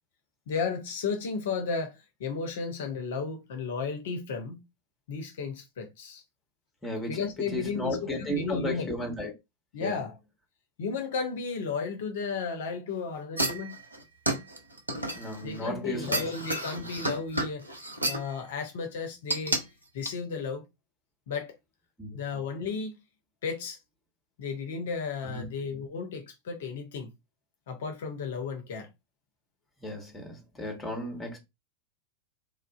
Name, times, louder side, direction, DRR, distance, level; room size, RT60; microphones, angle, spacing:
voice 1, 0.5-4.6 5.1-6.2 7.1-8.9 9.7-10.2 10.8-13.7 15.4-17.7 18.1-19.6 19.9-20.6 21.3-21.5 22.1-22.9 23.4-23.8 24.4-27.1 27.7-28.9, left 5 dB, 55° left, 0.6 m, -33 dB
voice 2, 6.8-7.2 7.5-9.3 9.8-10.0 15.1-16.2 22.0-22.2 25.2-25.5 29.8-31.4, left 1 dB, 10° left, 1.1 m, -34 dB
sound 1, 13.4-15.6 16.0-18.3 19.3-19.6 20.1-20.2, right 1 dB, 80° right, 0.6 m, -31 dB
3.3 x 2.4 x 2.3 m
figure-of-eight pair, 90°, 0 cm